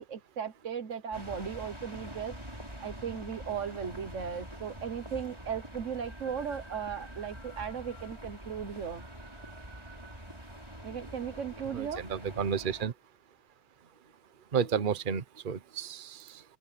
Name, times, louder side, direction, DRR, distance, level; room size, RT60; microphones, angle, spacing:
voice 1, 0.0-2.4 2.8-9.1 10.8-12.1, right 7 dB, 80° right, 1.5 m, -37 dB
sound 1, 1.1-12.9, equal, 20° right, 7.2 m, -45 dB
voice 2, 11.7-12.9 14.5-16.4, right 7 dB, 45° right, 1.1 m, -32 dB
open air
omnidirectional pair, 1.3 m